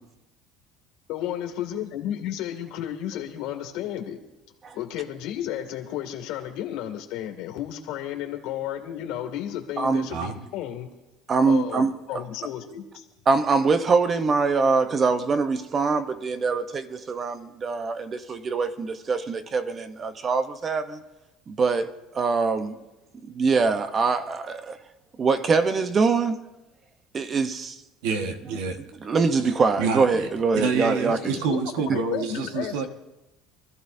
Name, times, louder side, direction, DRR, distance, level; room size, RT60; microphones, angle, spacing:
voice 1, 1.1-4.2 4.7-10.9 11.5-13.0 31.3-31.6 31.9-32.7, left 11 dB, 70° left, 2.2 m, -33 dB
voice 2, 9.8-10.1 11.3-12.2 13.3-21.0 21.5-22.7 23.3-24.8 25.2-26.4 27.1-27.8 29.0-31.4, right 4 dB, 25° right, 0.8 m, -24 dB
voice 3, 28.0-28.8 29.8-30.3 30.5-32.8, right 5 dB, 90° right, 1.4 m, -27 dB
24.5 x 14.0 x 2.7 m
cardioid pair, 150°, 0 cm